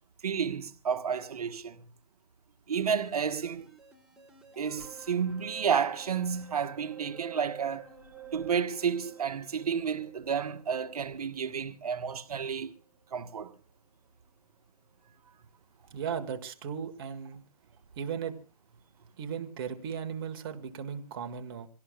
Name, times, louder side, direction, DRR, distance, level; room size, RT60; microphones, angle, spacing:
voice 1, 0.2-1.9 2.7-3.7 4.6-7.8 8.3-12.7 13.1-13.5, right 7 dB, 65° right, 1.5 m, -31 dB
sound 1, 2.7-13.1 13.5-13.6, right 8 dB, 5° right, 1.6 m, -50 dB
voice 2, 15.9-17.4 18.0-18.4 19.2-21.7, right 7 dB, 35° right, 1.7 m, -36 dB
26.5 x 17.0 x 2.4 m
hypercardioid pair, 155°, 21 cm